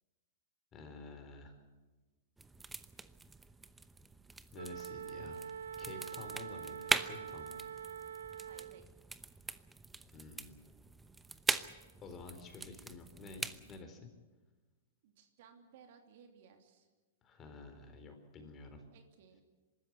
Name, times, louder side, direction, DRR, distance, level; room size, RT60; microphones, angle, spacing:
voice 1, 0.7-1.5 4.5-5.4 5.8-7.6 10.0-10.5 12.0-14.1 17.2-18.8, left 3 dB, 25° left, 6 dB, 4.2 m, -50 dB
sound 1, 2.4-13.8, right 3 dB, 10° right, 0.8 m, -42 dB
Wind instrument woodwind instrument, 4.5-8.9, right 8 dB, 85° right, 0.6 m, -45 dB
voice 2, 8.5-8.9 15.0-16.9 18.9-19.4, right 7 dB, 60° right, 5 dB, 2.9 m, -60 dB
24.0 x 13.5 x 9.7 m, 1.3 s
hypercardioid pair, 115°, 0 cm